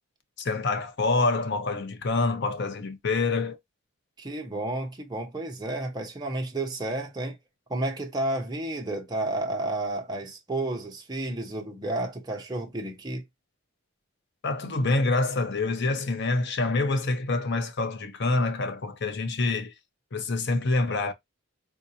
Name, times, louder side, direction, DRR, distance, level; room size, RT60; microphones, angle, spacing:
voice 1, 0.4-3.6 14.4-19.7 20.1-21.1, left 3 dB, 55° left, 0.6 m, -26 dB
voice 2, 4.2-7.4 7.7-13.2, right 2 dB, 20° right, 0.7 m, -31 dB
3.8 x 2.6 x 2.7 m
head